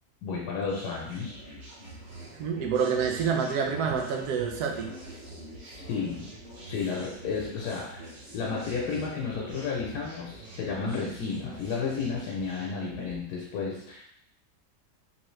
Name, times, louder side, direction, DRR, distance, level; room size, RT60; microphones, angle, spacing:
voice 1, 0.2-1.4 5.9-6.3 6.6-14.0, left 5 dB, 80° left, -2 dB, 1.2 m, -32 dB
sound 1, 0.6-13.2, right 1 dB, 35° right, 1.0 m, -45 dB
voice 2, 2.4-4.9, right 6 dB, 75° right, 2 dB, 1.2 m, -27 dB
3.8 x 3.0 x 3.1 m, 0.68 s
omnidirectional pair, 1.7 m